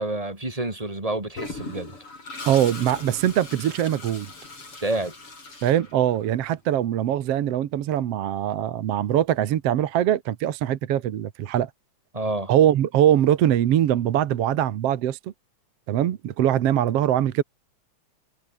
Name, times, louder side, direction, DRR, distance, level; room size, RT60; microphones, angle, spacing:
voice 1, 0.0-2.0 4.8-5.1 12.1-12.5, right 2 dB, 10° right, 3.1 m, -28 dB
Toilet flush, 1.3-6.4, left 3 dB, 40° left, 7.2 m, -39 dB
voice 2, 2.5-4.3 5.6-11.7 12.5-15.2 15.9-17.4, right 11 dB, 60° right, 1.9 m, -22 dB
omnidirectional pair, 3.7 m